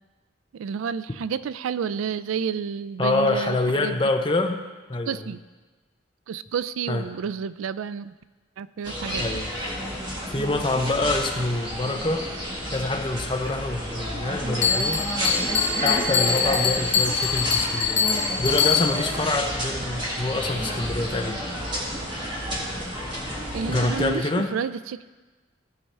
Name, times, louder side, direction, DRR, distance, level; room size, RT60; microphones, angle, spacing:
voice 1, 0.5-4.0 5.1-5.4 6.3-8.1 8.6-9.3 23.5-25.0, right 7 dB, 90° right, 15 dB, 0.3 m, -30 dB
voice 2, 3.0-4.6 4.9-5.3 6.9-7.0 9.2-9.5 10.3-12.3 12.7-15.1 15.8-18.1 18.4-21.4 23.7-24.6, left 2 dB, 25° left, 4 dB, 0.6 m, -26 dB
sound 1, 8.8-24.1, equal, 25° right, 1.9 m, -30 dB
Bell, 14.6-19.1, left 6 dB, 60° left, 0.8 m, -24 dB
16.5 x 5.6 x 3.3 m, 1.3 s
head